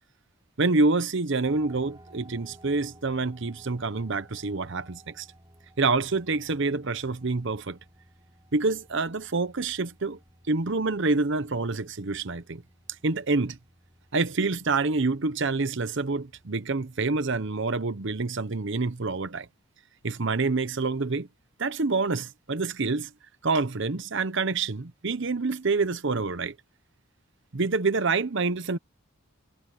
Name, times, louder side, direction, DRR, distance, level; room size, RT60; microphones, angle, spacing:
voice 1, 0.6-5.3 5.8-7.8 8.5-10.2 10.5-12.6 13.0-13.6 14.1-19.5 20.0-21.3 21.6-23.1 23.4-26.6 27.5-28.8, right 3 dB, 55° right, 0.8 m, -27 dB
sound 1, 1.4-18.6, right 1 dB, 15° right, 4.1 m, -57 dB
head